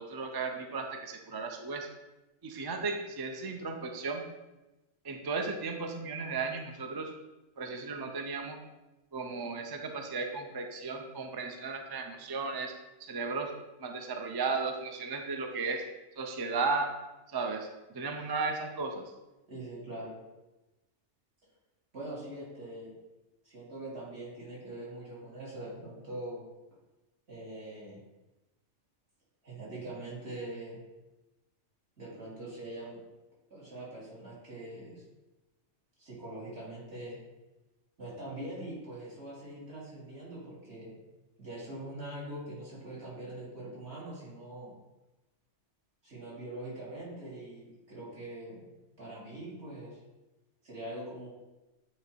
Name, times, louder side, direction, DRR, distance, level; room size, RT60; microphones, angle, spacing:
voice 1, 0.0-1.9 2.4-4.2 5.0-7.1 7.6-8.6 9.1-12.7 13.0-13.5 13.8-15.8 16.2-17.0 17.3-17.7 17.9-19.1, right 4 dB, 35° right, 4 dB, 0.3 m, -35 dB
voice 2, 19.5-20.1 21.9-22.9 23.4-26.4 27.3-28.0 29.4-30.8 32.0-33.0 33.5-35.0 36.0-37.2 38.0-41.0 41.4-44.7 46.0-50.0 50.6-51.3, right 1 dB, 60° right, -7 dB, 2.7 m, -43 dB
8.5 x 2.9 x 4.5 m, 1.0 s
omnidirectional pair, 1.2 m